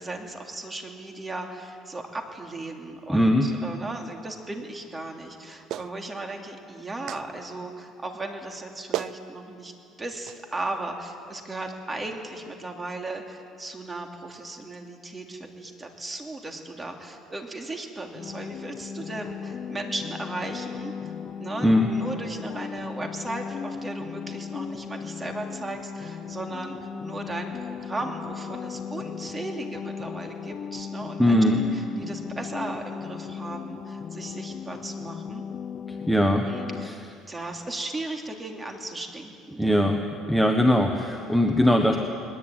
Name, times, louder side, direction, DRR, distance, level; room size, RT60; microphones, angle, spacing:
voice 1, 0.0-9.7 10.0-21.1 21.4-35.4 36.4-39.9, right 2 dB, 15° right, 3 dB, 2.8 m, -36 dB
voice 2, 3.1-3.5 21.6-21.9 31.2-31.6 35.9-36.5 36.8-36.9 39.6-40.0 40.3-42.0, left 1 dB, ahead, 4 dB, 1.3 m, -20 dB
Clapping, 5.7-5.9 7.1-7.2 8.5-8.6 8.9-9.2 10.3-10.4, right 12 dB, 55° right, 0.6 m, -31 dB
sound 1, 18.1-36.9, left 6 dB, 40° left, 0.9 m, -36 dB
21.0 x 20.0 x 9.2 m, 2.5 s
cardioid pair, 125°, 0 cm